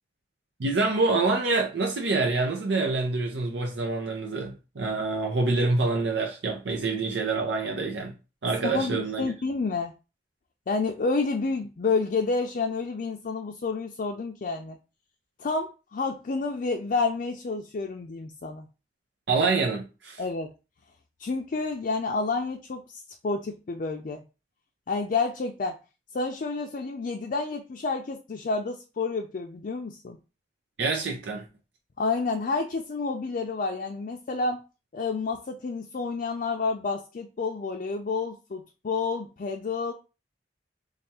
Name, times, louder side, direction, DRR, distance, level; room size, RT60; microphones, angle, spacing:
voice 1, 0.6-8.1 8.4-9.3 19.3-20.2 30.8-31.4, right 3 dB, 80° right, 0.6 m, -26 dB
voice 2, 8.6-9.9 10.7-14.8 15.4-18.7 20.2-20.5 21.2-24.2 24.9-25.8 26.1-30.2 32.0-34.6 34.9-39.9, left 4 dB, 50° left, 0.4 m, -29 dB
3.4 x 2.3 x 4.2 m
head